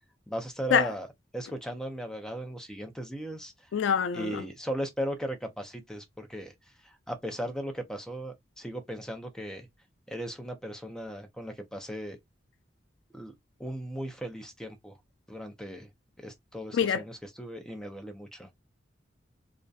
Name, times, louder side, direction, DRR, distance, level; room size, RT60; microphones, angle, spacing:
voice 1, 0.3-1.1 1.3-3.5 4.1-6.5 6.8-9.7 10.1-12.2 13.1-13.3 13.6-15.0 15.3-15.9 16.2-18.5, right 1 dB, 5° left, 0.4 m, -37 dB
voice 2, 3.7-4.4 16.7-17.0, left 7 dB, 85° left, 0.3 m, -25 dB
2.6 x 2.1 x 2.2 m
head